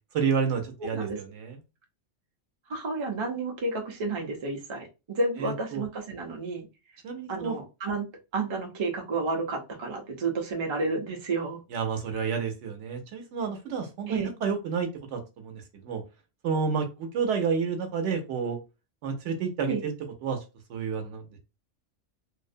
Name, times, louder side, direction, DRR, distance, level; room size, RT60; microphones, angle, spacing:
voice 1, 0.1-1.6 5.4-5.8 7.0-7.6 11.7-16.0 16.4-18.6 19.0-19.9 20.2-20.4 20.7-21.4, right 6 dB, 75° right, 4 dB, 0.9 m, -30 dB
voice 2, 2.7-6.7 7.3-8.0 8.3-11.6 14.1-14.3 19.7-19.8, right 3 dB, 40° right, 1 dB, 0.4 m, -31 dB
2.5 x 2.0 x 2.5 m, 0.28 s
omnidirectional pair, 1.3 m